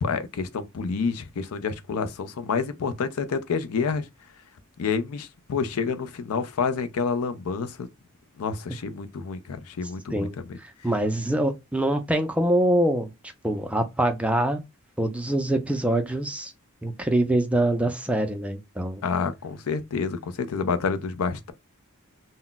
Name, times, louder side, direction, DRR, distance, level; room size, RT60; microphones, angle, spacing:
voice 1, 0.0-4.1 4.8-7.9 8.4-10.6 19.0-21.5, left 5 dB, 85° left, 0.5 m, -28 dB
voice 2, 10.6-13.1 13.4-14.6 15.0-16.5 16.8-19.0, right 1 dB, 5° right, 0.3 m, -24 dB
2.2 x 2.0 x 3.8 m
head